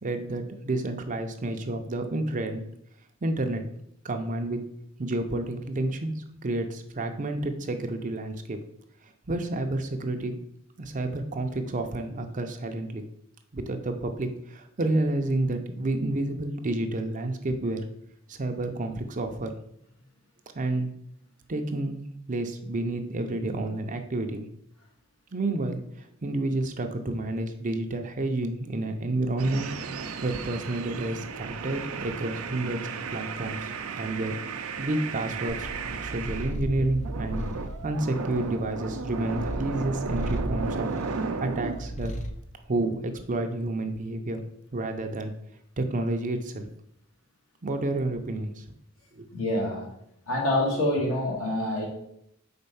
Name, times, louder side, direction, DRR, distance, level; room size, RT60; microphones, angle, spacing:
voice 1, 0.0-2.6 3.2-3.6 4.0-4.6 5.0-8.6 9.3-10.3 10.8-13.0 13.5-17.8 18.3-19.5 20.5-20.9 21.5-22.0 22.3-24.5 25.3-29.7 30.2-32.8 33.1-34.3 34.8-35.7 36.0-37.4 37.8-40.9 41.4-42.1 42.7-44.4 44.7-45.3 45.8-46.7 47.6-48.6 49.1-49.3, right 2 dB, 40° right, 5 dB, 0.6 m, -30 dB
sound 1, 29.4-36.6 37.0-41.8, right 5 dB, 90° right, 0.5 m, -35 dB
Purr, 35.5-42.4, equal, 35° left, 0.6 m, -35 dB
voice 2, 49.3-49.9 50.3-51.9, left 1 dB, 75° left, -3 dB, 1.9 m, -26 dB
4.4 x 4.0 x 5.5 m, 0.75 s
head